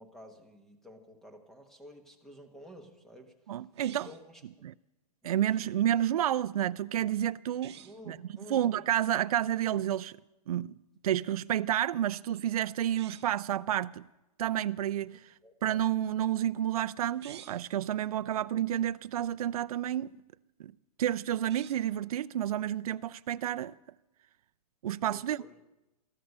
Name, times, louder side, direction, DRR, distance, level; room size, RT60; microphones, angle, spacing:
voice 1, 0.0-3.7 4.0-4.4 5.2-5.6 7.7-8.7 15.4-15.5 25.0-25.6, equal, ahead, 1.3 m, -51 dB
voice 2, 3.5-4.1 4.6-4.7 5.2-7.7 8.1-8.2 8.5-10.1 10.5-10.7 11.0-14.0 14.4-15.3 15.6-20.1 20.6-20.7 21.0-23.7 24.8-25.4, right 11 dB, 65° right, 0.4 m, -30 dB
sound 1, 3.7-4.3 7.5-8.0 12.8-13.5 17.1-17.7 21.3-22.0, right 10 dB, 45° right, 1.1 m, -52 dB
13.5 x 13.0 x 6.7 m
hypercardioid pair, 165°, 20 cm